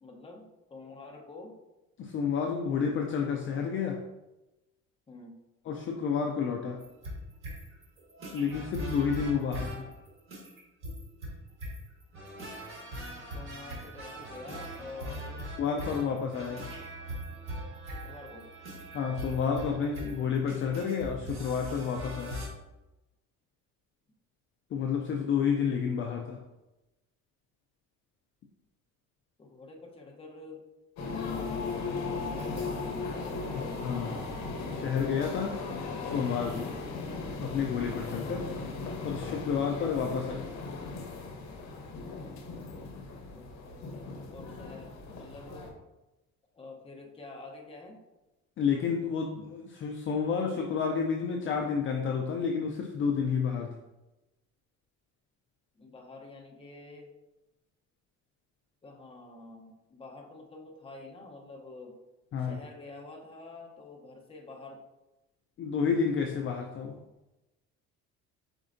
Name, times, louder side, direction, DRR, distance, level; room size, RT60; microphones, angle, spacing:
voice 1, 0.0-1.6 5.1-5.4 13.2-15.5 17.9-18.5 29.4-30.7 32.2-33.7 36.5-36.7 43.3-45.8 46.5-48.0 55.7-57.1 58.8-62.0 62.4-64.8, left 3 dB, 20° left, 0 dB, 0.8 m, -48 dB
voice 2, 2.0-4.1 5.7-6.9 8.3-9.9 15.6-16.7 18.9-22.5 24.7-26.5 33.8-34.2 34.7-35.7 36.0-36.7 37.4-40.5 48.6-53.8 62.3-62.6 65.6-67.0, left 6 dB, 40° left, 3 dB, 0.4 m, -30 dB
sound 1, 6.8-22.5, equal, 40° right, 1.6 m, -41 dB
sound 2, 31.0-45.7, left 4 dB, 60° left, 0.9 m, -37 dB
4.6 x 4.3 x 2.6 m, 1.0 s
cardioid pair, 130°, 31 cm